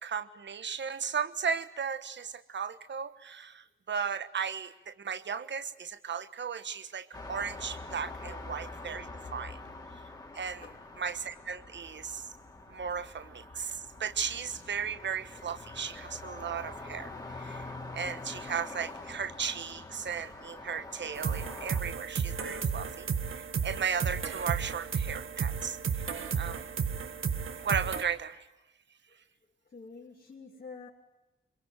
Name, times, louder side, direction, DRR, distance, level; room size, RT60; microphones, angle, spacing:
voice 1, 0.0-9.6 10.3-10.7 11.0-12.2 12.7-17.1 17.4-17.7 17.9-23.1 23.3-25.8 26.3-26.6 27.6-28.4, right 7 dB, 60° right, 13 dB, 1.3 m, -36 dB
sound 1, 7.1-21.8, left 2 dB, 20° left, 2.6 m, -45 dB
sound 2, 21.1-28.0, right 6 dB, 80° right, 1.9 m, -33 dB
voice 2, 29.7-30.9, left 4 dB, 45° left, -3 dB, 3.1 m, -47 dB
25.5 x 23.0 x 9.3 m, 0.98 s
wide cardioid pair, 175°, 21 cm